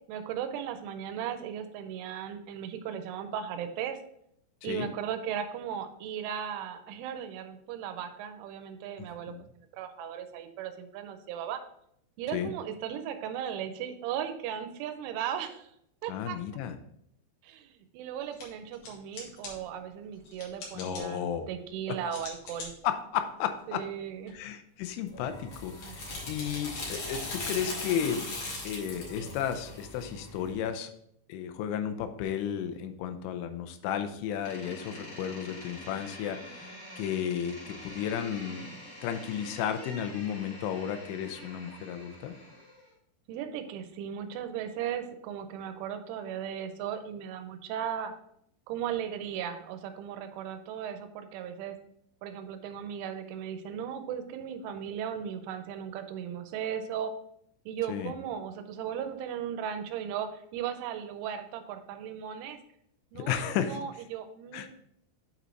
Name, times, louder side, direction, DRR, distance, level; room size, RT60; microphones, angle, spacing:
voice 1, 0.1-4.0 4.6-9.3 9.7-11.6 12.2-15.7 16.0-16.4 17.4-22.7 23.7-24.3 25.8-26.2 43.3-48.1 48.7-51.8 52.2-57.1 57.7-62.6 63.1-63.4 63.6-64.7, right 9 dB, 90° right, 8 dB, 3.1 m, -37 dB
voice 2, 9.0-9.4 12.3-12.5 16.1-16.8 20.7-21.5 21.9-22.0 22.8-23.9 24.3-28.3 28.6-30.9 31.3-38.7 39.0-42.4 57.9-58.1 63.2-63.8 64.5-64.7, left 9 dB, 85° left, 8 dB, 3.1 m, -33 dB
sound 1, 18.2-24.3, left 3 dB, 65° left, 3.9 m, -48 dB
sound 2, 25.1-30.6, left 2 dB, 50° left, 2.6 m, -39 dB
Door, 34.4-42.9, left 1 dB, 30° left, 1.8 m, -46 dB
8.9 x 4.1 x 4.5 m, 0.72 s
omnidirectional pair, 5.4 m